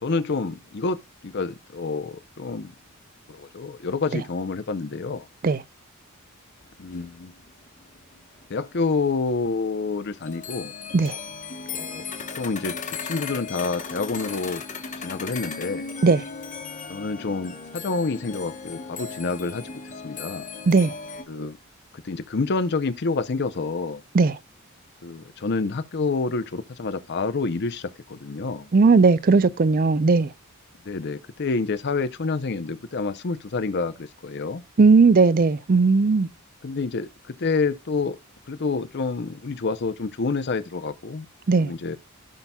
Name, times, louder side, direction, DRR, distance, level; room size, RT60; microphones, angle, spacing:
voice 1, 0.0-2.7 3.3-5.3 6.8-7.3 8.5-10.7 11.8-12.0 12.4-12.8 13.0-14.6 15.0-15.9 16.9-19.7 20.0-20.4 21.3-21.6 22.0-24.0 25.0-28.7 30.9-34.6 36.6-38.2 38.5-41.3 41.6-42.0, left 4 dB, 50° left, 0.6 m, -28 dB
sound 1, 6.6-6.7 6.9-8.9 9.2-9.3 9.8-9.9 10.2-21.2, left 5 dB, 35° left, 1.1 m, -36 dB
voice 2, 28.7-30.3 34.8-36.3 41.5-41.7, right 4 dB, 40° right, 0.4 m, -17 dB
16.0 x 5.7 x 2.2 m
head